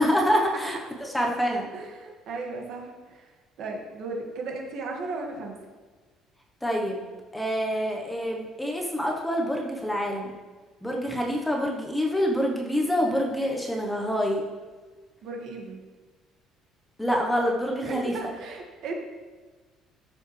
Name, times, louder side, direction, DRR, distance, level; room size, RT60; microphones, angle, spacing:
voice 1, 0.0-1.7 6.6-7.0 7.3-10.3 10.8-14.4 17.0-18.1, equal, 5° left, 0 dB, 1.0 m, -26 dB
voice 2, 1.7-3.3 3.6-5.6 15.2-15.8 17.9-18.9, right 3 dB, 55° right, 1 dB, 1.8 m, -36 dB
13.5 x 7.0 x 3.3 m, 1.3 s
cardioid pair, 160°, 0 cm